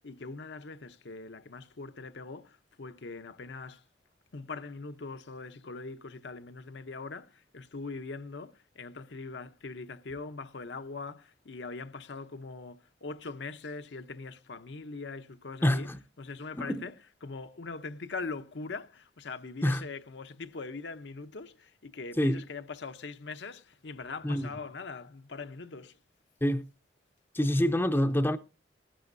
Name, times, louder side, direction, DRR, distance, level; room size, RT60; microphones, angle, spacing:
voice 1, 0.0-3.8 4.3-15.9 16.2-16.9 17.2-26.0, left 4 dB, 75° left, 0.8 m, -42 dB
voice 2, 15.6-16.0 16.5-16.8 19.6-19.8 22.2-22.4 24.2-24.5 26.4-26.6 27.3-28.4, equal, 10° left, 0.5 m, -26 dB
19.0 x 11.5 x 2.6 m
head